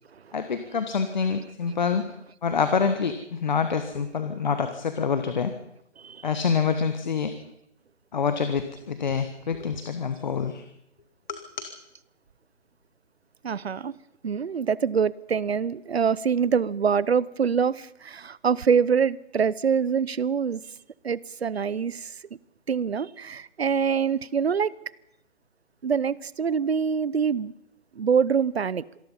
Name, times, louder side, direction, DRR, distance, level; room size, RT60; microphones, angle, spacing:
voice 1, 0.3-2.1 2.4-5.5 6.2-7.3 8.1-10.6 11.3-11.7, left 6 dB, 40° left, 1.4 m, -26 dB
voice 2, 13.4-14.0 14.2-20.6 21.0-22.1 22.7-24.7 25.8-27.5 28.0-28.8, right 6 dB, 60° right, 0.8 m, -25 dB
26.0 x 18.5 x 5.6 m
figure-of-eight pair, 160°, 36 cm